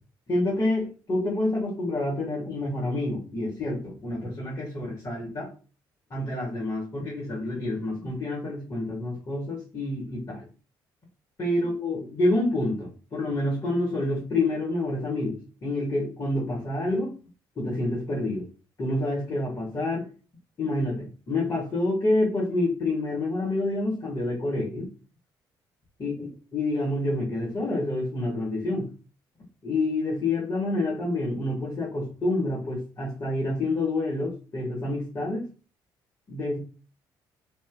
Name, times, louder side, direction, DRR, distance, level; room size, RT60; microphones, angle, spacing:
voice 1, 0.3-5.5 6.1-10.5 11.4-15.4 15.6-17.1 17.6-18.5 18.8-20.0 20.6-24.9 26.0-26.3 26.5-28.9 29.6-35.5 36.3-36.6, left 2 dB, 40° left, -5 dB, 2.2 m, -28 dB
4.2 x 2.4 x 3.8 m, 0.35 s
supercardioid pair, 60°, 10 cm